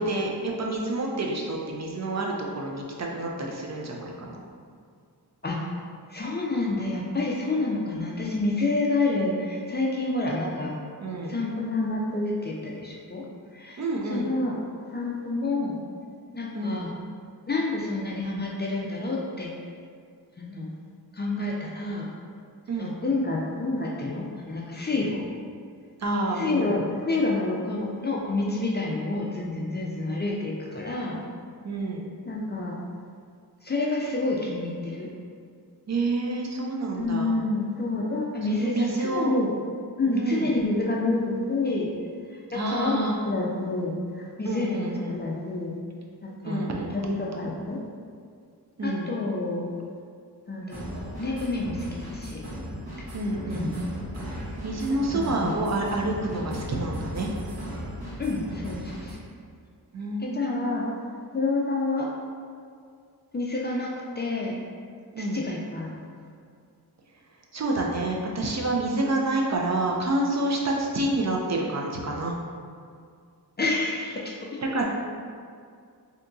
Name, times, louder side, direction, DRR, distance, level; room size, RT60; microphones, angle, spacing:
voice 1, 0.0-4.4 11.0-11.3 13.8-14.3 16.5-16.9 22.7-22.9 26.0-26.7 31.6-32.1 35.9-37.4 38.5-39.3 40.1-40.5 42.5-43.2 44.4-45.2 46.4-47.0 48.8-49.2 53.1-53.7 54.6-57.3 59.9-61.0 65.1-65.4 67.5-72.3 74.7-74.8, right 2 dB, 45° right, -1 dB, 0.4 m, -28 dB
voice 2, 6.1-10.7 11.3-13.2 13.5-14.6 14.8-15.8 16.3-16.9 17.5-19.5 20.4-20.7 21.1-22.1 22.8-25.2 26.3-31.2 32.3-32.8 33.6-35.1 36.9-39.5 40.0-41.9 42.3-45.8 46.2-46.6 46.9-47.8 48.8-49.7 50.5-50.9 51.2-52.4 53.5-53.8 55.1-55.5 58.2-59.2 60.2-60.9 61.3-62.1 63.3-64.6 65.2-66.0 73.6-74.6, left 2 dB, 30° left, -3 dB, 0.4 m, -28 dB
sound 1, 50.7-59.1, equal, 70° right, 1.3 m, -37 dB
3.4 x 2.8 x 2.6 m, 2.2 s
wide cardioid pair, 100°, 39 cm